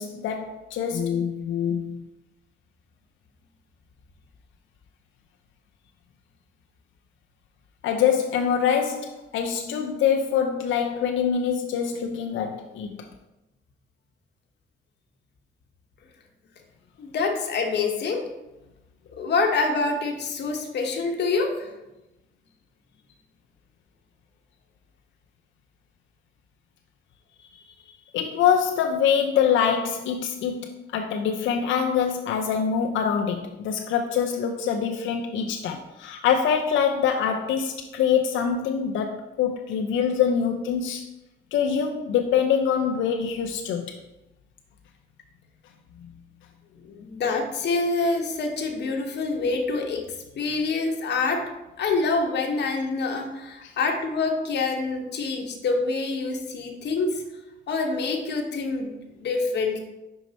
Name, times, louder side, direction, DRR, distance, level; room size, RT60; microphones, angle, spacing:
voice 1, 0.0-2.1 7.8-13.0 28.1-41.1 41.5-44.0 46.0-46.1 53.6-53.7, left 7 dB, 75° left, 3 dB, 0.5 m, -24 dB
voice 2, 17.0-18.2 19.1-21.7 46.8-50.0 50.4-51.4 51.8-57.2 57.7-59.8, left 3 dB, 60° left, 2 dB, 1.1 m, -26 dB
5.3 x 4.6 x 4.0 m, 0.97 s
cardioid pair, 90°, 20 cm